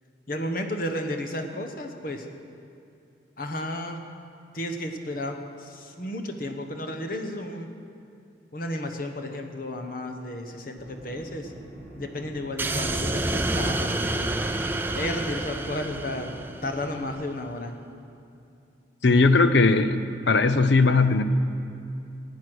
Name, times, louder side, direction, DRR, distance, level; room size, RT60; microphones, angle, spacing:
voice 1, 0.3-2.3 3.4-4.0 4.5-7.7 8.5-11.5 11.9-14.3 14.9-16.3 16.6-17.7, left 1 dB, 50° left, 5 dB, 1.1 m, -33 dB
sound 1, 10.8-17.1, right 1 dB, 10° left, 3.5 m, -44 dB
sound 2, 12.6-16.9, right 2 dB, 10° right, 0.5 m, -28 dB
voice 2, 19.0-20.0 20.3-21.2, left 3 dB, 65° left, 11 dB, 0.6 m, -18 dB
15.5 x 9.5 x 6.2 m, 2.7 s
head